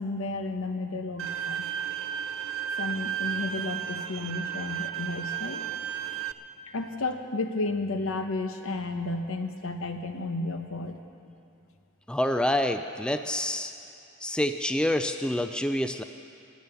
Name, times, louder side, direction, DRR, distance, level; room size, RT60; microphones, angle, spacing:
voice 1, 0.0-1.7 2.8-5.7 6.7-11.0, left 2 dB, 70° left, 6 dB, 1.0 m, -32 dB
Bowed string instrument, 1.2-6.3, right 9 dB, 65° right, 0.5 m, -33 dB
voice 2, 12.1-13.7 14.2-16.0, left 1 dB, 5° left, 8 dB, 0.3 m, -27 dB
16.5 x 10.5 x 6.9 m, 2.7 s
head